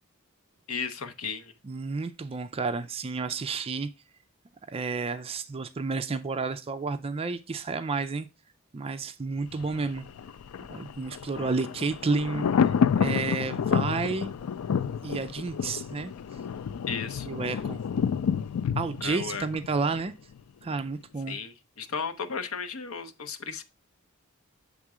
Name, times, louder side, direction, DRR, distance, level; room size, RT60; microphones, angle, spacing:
voice 1, 0.7-1.5 16.9-17.3 19.0-19.5 21.3-23.6, left 5 dB, 70° left, 0.8 m, -34 dB
voice 2, 1.6-3.9 4.7-8.3 8.7-10.1 10.7-14.3 15.0-16.1 17.2-17.8 18.8-20.1 20.6-21.4, right 4 dB, 25° right, 0.4 m, -31 dB
Thunder, 9.5-20.4 20.7-20.8, left 7 dB, 90° left, 0.4 m, -29 dB
7.4 x 3.7 x 4.8 m
head